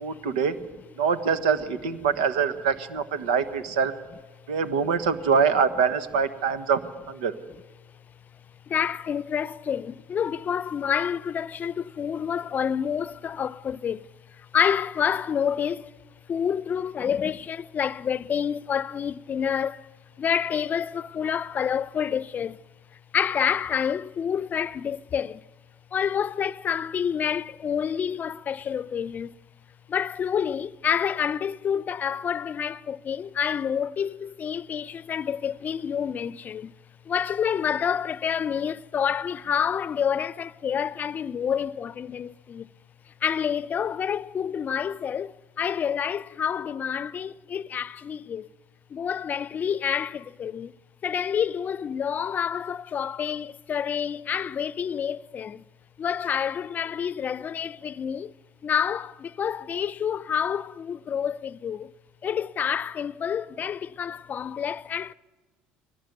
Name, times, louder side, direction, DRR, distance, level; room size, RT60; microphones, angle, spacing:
voice 1, 0.0-0.6 1.0-3.9 4.5-6.8 7.1-7.3, right 6 dB, 90° right, 1.3 m, -24 dB
voice 2, 8.7-14.1 14.5-15.9 16.3-19.9 20.2-22.6 23.1-25.4 25.9-29.3 29.9-36.7 37.1-42.7 43.2-48.5 48.9-50.7 51.0-55.6 56.0-58.3 58.6-61.9 62.2-65.1, left 8 dB, 40° left, 0.6 m, -28 dB
23.0 x 17.5 x 9.4 m
hypercardioid pair, 75°, 4 cm